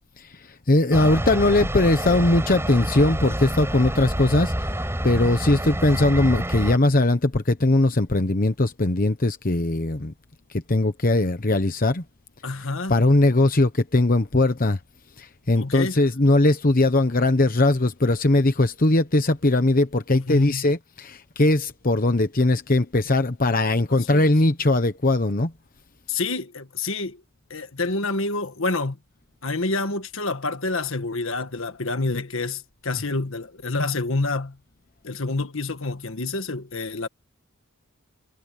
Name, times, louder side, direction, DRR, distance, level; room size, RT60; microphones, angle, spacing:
voice 1, 0.2-4.7 5.0-10.1 10.5-12.0 12.9-14.8 15.2-25.5, left 2 dB, 40° left, 1.0 m, -20 dB
sound 1, 0.9-6.8, right 1 dB, 10° right, 6.4 m, -27 dB
voice 2, 12.4-12.9 15.6-16.0 20.1-20.7 24.1-24.3 26.1-27.2 27.5-29.0 29.4-34.6 35.0-37.1, left 3 dB, 65° left, 1.6 m, -27 dB
head